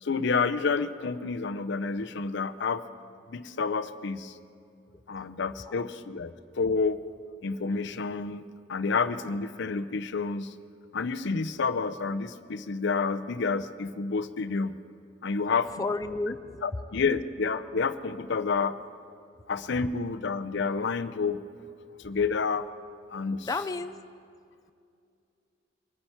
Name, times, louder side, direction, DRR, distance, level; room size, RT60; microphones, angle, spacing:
voice 1, 0.0-2.8 3.3-4.3 5.1-7.0 7.4-10.5 10.9-14.8 15.2-15.8 16.6-18.7 19.5-21.4 22.0-22.7 23.1-23.5, left 4 dB, 65° left, 13 dB, 0.6 m, -29 dB
voice 2, 15.8-16.6 23.5-23.9, left 3 dB, 20° left, 8 dB, 0.3 m, -31 dB
24.0 x 9.9 x 4.5 m, 2.4 s
head